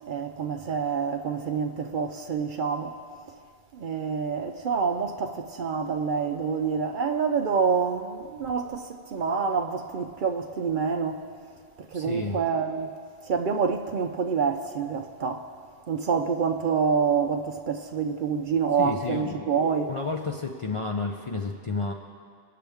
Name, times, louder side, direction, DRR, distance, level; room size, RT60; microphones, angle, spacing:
voice 1, 0.0-2.9 3.7-11.2 11.8-12.9 13.3-15.4 15.9-19.9, right 6 dB, 60° right, 0.6 m, -27 dB
voice 2, 11.9-12.4 18.8-19.5 19.9-21.9, left 4 dB, 40° left, 0.5 m, -31 dB
18.5 x 6.7 x 3.5 m
omnidirectional pair, 1.1 m